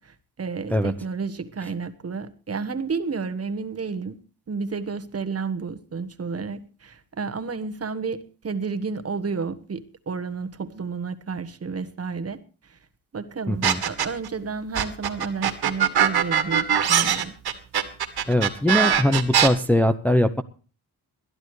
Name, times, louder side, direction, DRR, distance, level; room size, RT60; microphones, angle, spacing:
voice 1, 0.0-4.1 4.5-12.8 13.1-17.3, right 5 dB, 35° right, 10 dB, 1.4 m, -31 dB
voice 2, 13.5-13.8 18.3-20.4, left 1 dB, 5° left, 7 dB, 0.7 m, -21 dB
sound 1, 13.6-14.3 14.7-19.5, right 8 dB, 70° right, 2.0 m, -21 dB
21.5 x 12.5 x 3.2 m, 0.37 s
cardioid pair, 110°, 40 cm